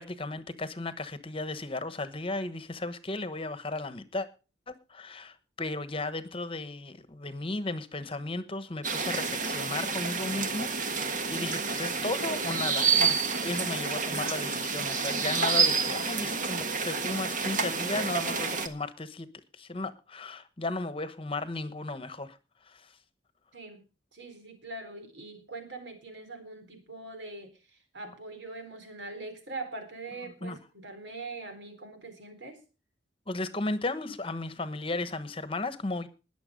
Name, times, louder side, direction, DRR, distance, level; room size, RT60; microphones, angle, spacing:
voice 1, 0.0-4.3 4.7-19.3 19.5-22.4 22.6-22.9 30.4-30.6 33.3-36.1, left 2 dB, 30° left, 12 dB, 1.1 m, -35 dB
sound 1, 8.8-18.7, right 5 dB, 45° right, 1.5 m, -29 dB
voice 2, 23.5-23.8 24.1-27.6 27.9-32.6, right 2 dB, 75° right, 7 dB, 4.2 m, -42 dB
20.5 x 7.1 x 5.2 m, 0.33 s
head